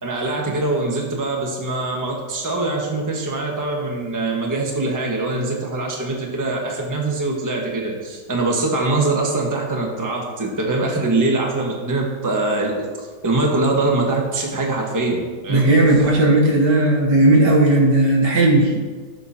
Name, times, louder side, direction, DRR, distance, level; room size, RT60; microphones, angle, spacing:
voice 1, 0.0-12.9 13.2-15.7, right 2 dB, 10° right, -1 dB, 1.2 m, -23 dB
voice 2, 15.5-18.8, right 2 dB, 70° right, -1 dB, 2.2 m, -15 dB
15.0 x 7.1 x 2.8 m, 1.4 s
omnidirectional pair, 1.9 m